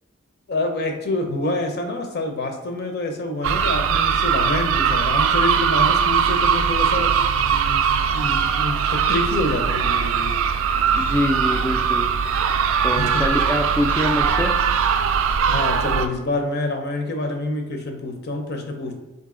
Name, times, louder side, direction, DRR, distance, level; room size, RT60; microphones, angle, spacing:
voice 1, 0.5-7.1 7.5-7.8 8.1-10.4 13.0-13.2 15.5-18.9, left 2 dB, 55° left, 4 dB, 0.6 m, -27 dB
sound 1, 3.4-16.1, right 7 dB, 70° right, 0.3 m, -20 dB
Cheering, 6.9-14.9 15.3-15.5 15.8-16.8, left 1 dB, 90° left, 1.0 m, -44 dB
voice 2, 10.9-12.1 12.8-14.5, left 1 dB, 10° left, 0 dB, 0.3 m, -24 dB
3.9 x 2.7 x 3.7 m, 1.1 s
head